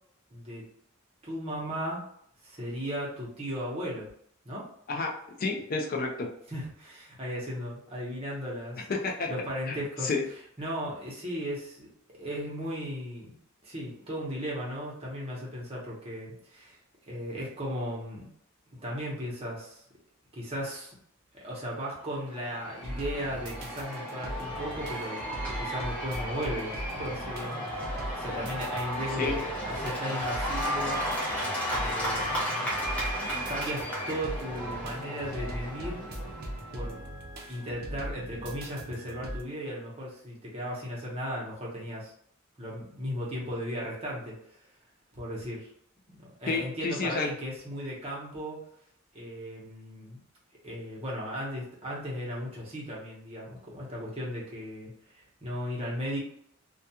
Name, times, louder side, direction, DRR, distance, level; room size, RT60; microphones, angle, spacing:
voice 1, 0.3-0.6 1.2-2.0 2.4-4.1 4.4-4.7 6.5-8.9 9.3-10.1 10.6-11.9 12.1-13.3 13.6-16.8 17.1-18.3 18.7-19.8 20.3-20.9 21.3-25.2 25.6-31.1 31.7-32.7 33.2-36.1 36.7-37.0 37.5-42.1 42.6-44.6 45.1-45.7 46.1-48.6 49.1-50.2 50.6-56.2, equal, 30° right, -5 dB, 0.8 m, -36 dB
voice 2, 5.4-6.3 8.9-9.3 9.7-10.2 29.2-29.4 46.5-47.3, left 3 dB, 45° left, 1 dB, 0.4 m, -30 dB
Cheering / Applause / Crowd, 22.1-36.8, equal, 5° left, 0.7 m, -34 dB
sound 1, 22.8-39.4, right 1 dB, 45° right, 0.5 m, -40 dB
2.3 x 2.2 x 2.8 m, 0.68 s
head